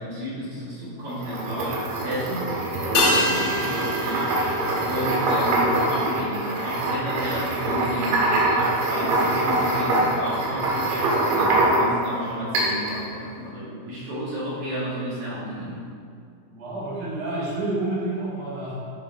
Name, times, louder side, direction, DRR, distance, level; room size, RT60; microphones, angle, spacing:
voice 1, 0.0-15.9, equal, 50° right, -10 dB, 2.4 m, -32 dB
sound 1, 1.1-12.1 12.5-13.0, right 2 dB, 70° right, 3.3 m, -24 dB
sound 2, 3.0-7.7 7.9-8.0, left 2 dB, 80° left, 3.4 m, -29 dB
voice 2, 16.5-18.7, right 2 dB, 85° right, -8 dB, 1.2 m, -29 dB
10.5 x 3.6 x 4.7 m, 2.3 s
omnidirectional pair, 5.9 m